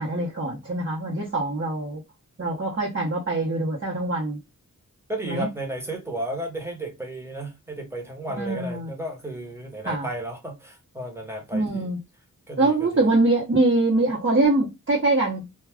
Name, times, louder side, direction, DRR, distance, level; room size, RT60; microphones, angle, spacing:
voice 1, 0.0-2.0 2.4-4.4 5.3-5.5 8.4-8.9 9.8-10.1 11.5-12.0 12.6-15.4, right 2 dB, 40° right, 0.9 m, -23 dB
voice 2, 5.1-11.9 12.5-13.1, right 1 dB, 10° right, 1.0 m, -34 dB
2.3 x 2.3 x 3.4 m
wide cardioid pair, 95°, 33 cm